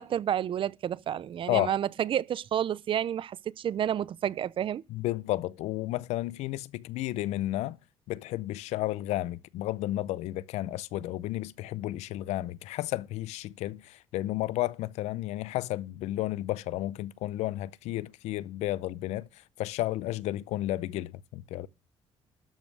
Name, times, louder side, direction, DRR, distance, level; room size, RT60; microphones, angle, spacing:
voice 1, 0.0-4.8, right 10 dB, 50° right, 0.5 m, -30 dB
voice 2, 4.9-7.8 8.1-21.7, left 16 dB, 90° left, 0.6 m, -32 dB
12.5 x 5.3 x 6.1 m
cardioid pair, 100°, 11 cm